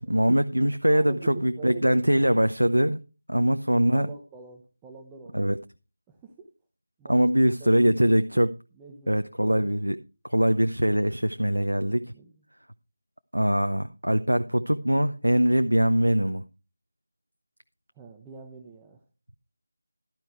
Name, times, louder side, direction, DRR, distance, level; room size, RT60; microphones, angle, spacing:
voice 1, 0.0-3.0 3.3-4.1 5.3-5.6 7.1-8.5 9.1-10.0 10.3-12.0 13.3-16.4, equal, 90° right, 0.7 m, -22 dB
voice 2, 0.9-2.0 3.3-5.5 6.1-6.5 8.7-9.1 12.1-12.4 17.9-19.0, right 4 dB, 10° right, 1.1 m, -45 dB
12.5 x 9.2 x 3.2 m
figure-of-eight pair, 165°, 0 cm